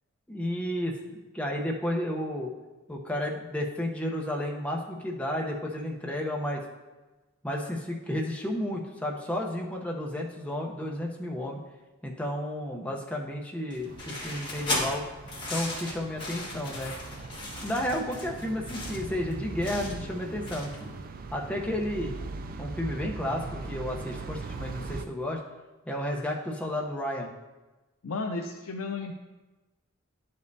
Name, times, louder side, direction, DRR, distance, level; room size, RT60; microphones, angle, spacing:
voice 1, 0.3-2.5 2.9-6.6 7.4-11.6 12.0-15.0 15.4-16.9 17.6-20.9 21.3-22.1 22.6-25.4 25.9-27.3, left 1 dB, 5° left, -1 dB, 0.7 m, -32 dB
sound 1, 13.7-20.9, left 2 dB, 20° left, 1.7 m, -36 dB
sound 2, 13.8-25.0, right 3 dB, 40° right, 0.4 m, -40 dB
voice 2, 28.0-29.1, left 3 dB, 80° left, 2 dB, 0.5 m, -33 dB
11.0 x 5.2 x 2.7 m, 1.2 s
head